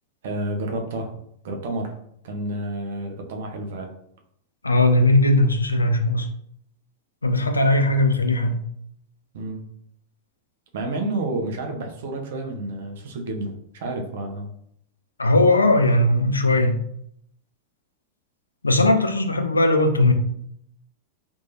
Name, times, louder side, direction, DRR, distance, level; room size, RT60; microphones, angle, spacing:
voice 1, 0.2-1.1 1.4-1.9 2.2-3.9 9.3-9.6 10.7-14.5, right 2 dB, 55° right, 3 dB, 0.7 m, -30 dB
voice 2, 4.6-6.3 7.2-8.6 15.2-16.8 18.6-20.1, left 1 dB, 80° left, 7 dB, 0.4 m, -18 dB
3.5 x 3.1 x 2.6 m, 0.70 s
figure-of-eight pair, 90°, 0 cm